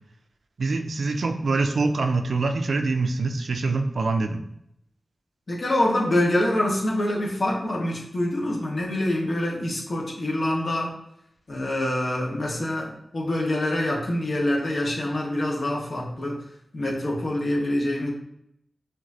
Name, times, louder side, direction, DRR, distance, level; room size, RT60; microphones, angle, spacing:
voice 1, 0.6-4.4, right 3 dB, 75° right, 6 dB, 0.5 m, -24 dB
voice 2, 5.5-10.9 11.5-16.4 16.7-18.1, left 1 dB, 65° left, -3 dB, 1.5 m, -25 dB
6.0 x 2.9 x 2.8 m, 0.75 s
cardioid pair, 50°, 0 cm